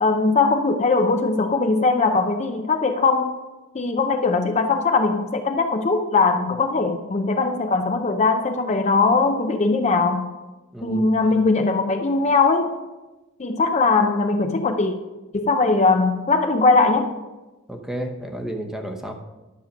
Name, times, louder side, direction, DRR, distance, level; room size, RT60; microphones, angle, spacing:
voice 1, 0.0-3.4 3.7-10.3 10.8-12.7 13.4-14.9 15.3-17.1, left 3 dB, 35° left, 5 dB, 0.5 m, -20 dB
voice 2, 10.7-11.4 17.7-19.1, right 1 dB, ahead, 3 dB, 0.8 m, -32 dB
11.0 x 6.8 x 5.1 m, 1.1 s
head